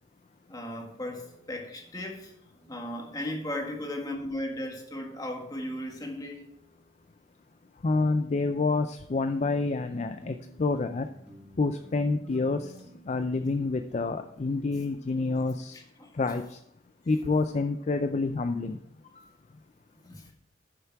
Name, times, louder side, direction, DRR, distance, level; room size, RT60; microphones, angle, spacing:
voice 1, 0.5-2.4 2.7-6.4 15.7-16.4 20.0-20.3, left 1 dB, 20° left, 1 dB, 1.7 m, -36 dB
sound 1, 1.0-4.7 5.6-8.3 9.1-9.2 9.6-14.0, right 1 dB, 5° right, 2.5 m, -55 dB
voice 2, 7.8-11.1 11.6-12.7 13.1-15.8 16.1-16.6 17.1-18.8, left 3 dB, 40° left, 9 dB, 0.4 m, -28 dB
10.5 x 6.8 x 4.7 m, 0.74 s
head